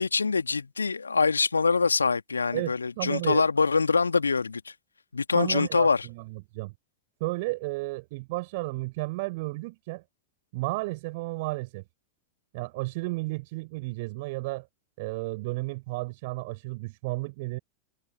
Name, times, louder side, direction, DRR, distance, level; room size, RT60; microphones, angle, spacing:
voice 1, 0.0-4.7 5.1-6.1, left 4 dB, 80° left, 2.1 m, -24 dB
voice 2, 2.5-3.4 5.3-6.7 7.2-10.0 10.5-11.8 12.5-14.7 15.0-17.6, right 23 dB, 50° right, 6.9 m, -33 dB
figure-of-eight pair, 85°, 0 cm